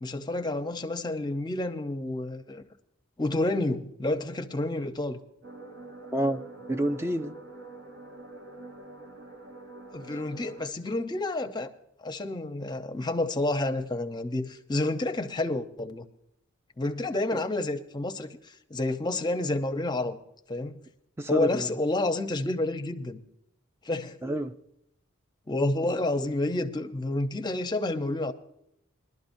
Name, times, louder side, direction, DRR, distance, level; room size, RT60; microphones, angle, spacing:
voice 1, 0.0-2.6 3.2-5.2 9.9-11.7 12.0-16.1 16.8-20.2 20.5-20.8 21.3-23.2 23.8-24.2 25.5-28.3, left 2 dB, 20° left, 0.7 m, -29 dB
sound 1, 5.4-10.7, right 2 dB, 55° right, 0.9 m, -45 dB
voice 2, 6.1-6.4 6.7-7.3 21.2-21.7 24.2-24.5, right 1 dB, 10° right, 0.5 m, -28 dB
20.5 x 12.0 x 2.6 m
head